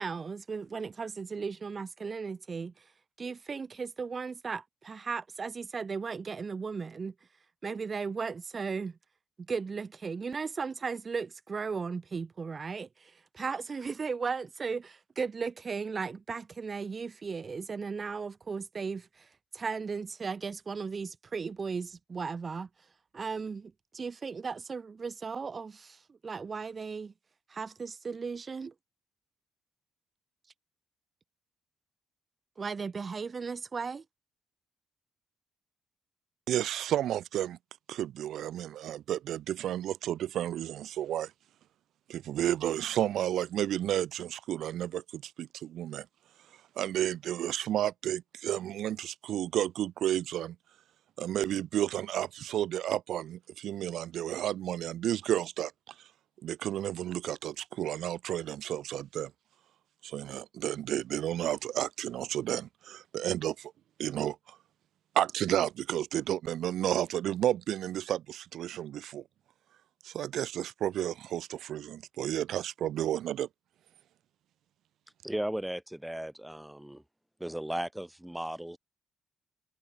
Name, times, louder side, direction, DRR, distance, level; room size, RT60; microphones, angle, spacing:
voice 1, 0.0-2.9 3.2-7.1 7.6-9.0 9.4-22.7 23.1-27.1 27.5-28.7 32.6-34.0, right 5 dB, 35° right, 1.9 m, -36 dB
voice 2, 36.5-37.6 37.9-41.3 42.1-46.1 46.8-50.6 51.2-55.9 56.4-59.3 60.0-63.7 64.0-64.6 65.1-69.2 70.0-73.5, right 11 dB, 75° right, 1.2 m, -32 dB
voice 3, 75.2-77.0 77.4-78.8, right 1 dB, 5° right, 1.9 m, -36 dB
cardioid pair, 90°, 0 cm